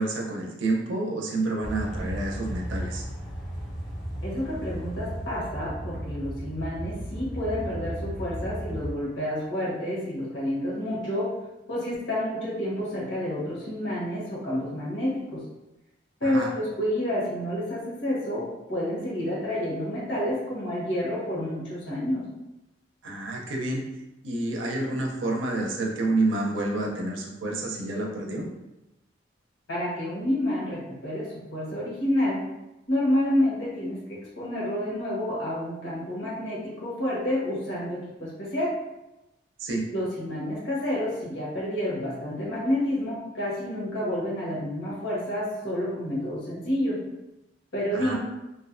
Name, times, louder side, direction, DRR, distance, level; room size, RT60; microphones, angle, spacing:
voice 1, 0.0-3.0 16.2-16.5 23.0-23.8 24.2-28.5 39.6-39.8 47.9-48.2, right 2 dB, 85° right, 0 dB, 0.5 m, -29 dB
sound 1, 1.6-8.9, equal, ahead, 0.4 m, -35 dB
voice 2, 4.2-11.3 11.7-15.4 16.2-22.2 29.7-32.4 32.9-38.7 39.9-47.0 47.7-48.2, left 1 dB, 90° left, -6 dB, 1.0 m, -29 dB
2.5 x 2.1 x 2.4 m, 0.95 s
head